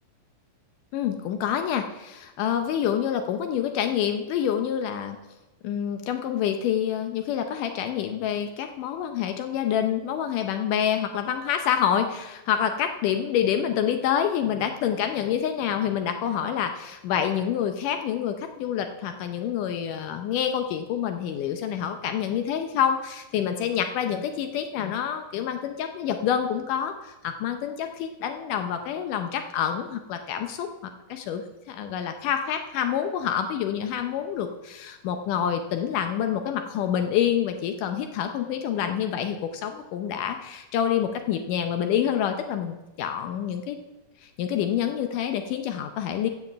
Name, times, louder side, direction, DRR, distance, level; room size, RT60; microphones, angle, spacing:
voice 1, 0.9-5.2 5.6-31.4 31.7-43.8 44.2-46.3, left 9 dB, 75° left, 6 dB, 2.1 m, -27 dB
9.2 x 7.6 x 7.7 m, 1.0 s
omnidirectional pair, 4.1 m